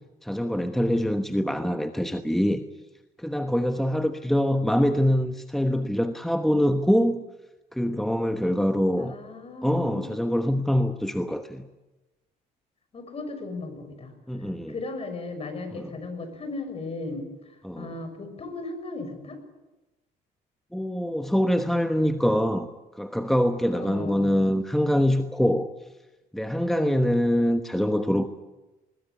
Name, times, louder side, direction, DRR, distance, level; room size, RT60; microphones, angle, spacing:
voice 1, 0.2-2.6 3.2-7.2 7.7-9.2 9.6-11.7 14.3-14.7 15.7-15.9 17.6-17.9 20.7-22.7 22.9-25.7 26.3-28.3, equal, ahead, 7 dB, 1.2 m, -24 dB
voice 2, 9.0-10.0 12.9-14.1 14.7-19.4 23.7-24.4 26.7-27.0, left 3 dB, 35° left, 8 dB, 6.3 m, -36 dB
21.5 x 20.5 x 9.8 m, 1.0 s
cardioid pair, 110°, 17 cm